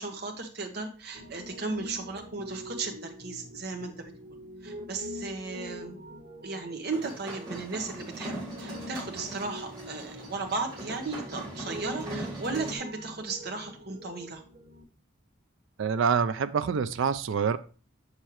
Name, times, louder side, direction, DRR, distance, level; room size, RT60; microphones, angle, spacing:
voice 1, 0.0-4.3 4.6-6.0 6.4-14.4, right 3 dB, 50° right, 3 dB, 1.2 m, -36 dB
Piano, 1.1-14.8, left 1 dB, 85° right, 1.6 m, -44 dB
sound 1, 6.9-12.7, right 1 dB, 20° right, 1.7 m, -40 dB
voice 2, 15.8-17.6, right 6 dB, 70° right, 11 dB, 0.4 m, -26 dB
6.6 x 6.5 x 2.9 m, 0.37 s
head